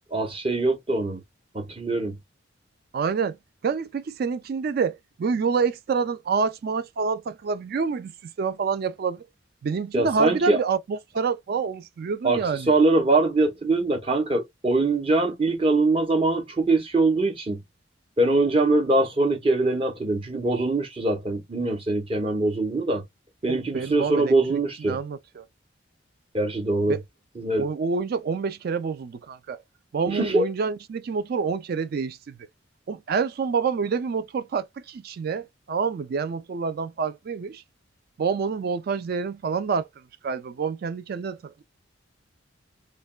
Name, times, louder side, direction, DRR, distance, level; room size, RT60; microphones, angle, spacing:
voice 1, 0.1-1.2 1.5-2.2 9.9-10.6 12.2-17.6 18.2-23.0 23.4-25.0 26.3-27.0 27.4-27.7 30.1-30.5, right 2 dB, 30° right, 0.7 m, -23 dB
voice 2, 2.9-3.4 3.6-8.1 8.4-9.2 9.6-12.7 23.5-25.5 26.9-27.0 27.6-29.6 29.9-32.4 32.9-37.6 38.2-39.9 40.2-41.6, right 5 dB, 50° right, 0.3 m, -27 dB
3.2 x 2.2 x 2.3 m
head